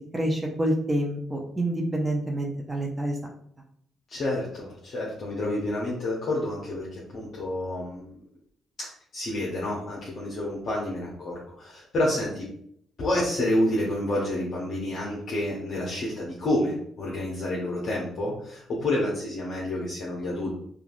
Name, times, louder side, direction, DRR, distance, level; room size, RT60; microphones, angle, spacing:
voice 1, 0.1-3.2, right 1 dB, 15° right, 0 dB, 0.5 m, -27 dB
voice 2, 4.1-8.2 8.8-12.5 13.0-20.5, left 1 dB, 55° left, -5 dB, 0.7 m, -29 dB
3.2 x 2.3 x 2.5 m, 0.67 s
cardioid pair, 90°, 0 cm